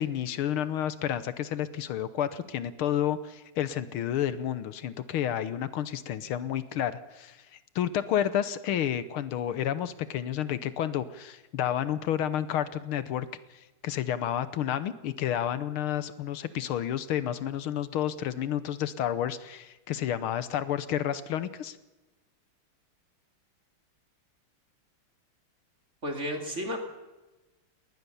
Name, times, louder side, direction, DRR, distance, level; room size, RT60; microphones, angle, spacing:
voice 1, 0.0-7.4 7.8-13.3 13.8-21.8, left 10 dB, 80° left, 14 dB, 1.8 m, -30 dB
voice 2, 26.0-26.8, equal, 35° right, 4 dB, 3.0 m, -32 dB
20.5 x 19.0 x 7.0 m, 1.1 s
omnidirectional pair, 2.4 m